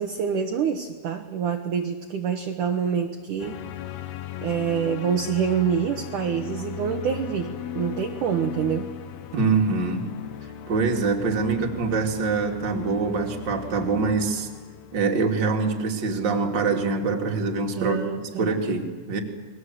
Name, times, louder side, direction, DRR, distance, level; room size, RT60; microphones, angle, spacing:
voice 1, 0.0-3.6 4.4-8.9 17.8-18.5, right 7 dB, 60° right, 4 dB, 2.4 m, -26 dB
sound 1, 3.4-15.0, left 11 dB, 75° left, 3.2 m, -37 dB
voice 2, 9.3-10.1 10.7-14.5 14.9-19.2, right 4 dB, 30° right, 2 dB, 2.7 m, -24 dB
30.0 x 21.5 x 7.9 m, 1.4 s
omnidirectional pair, 4.8 m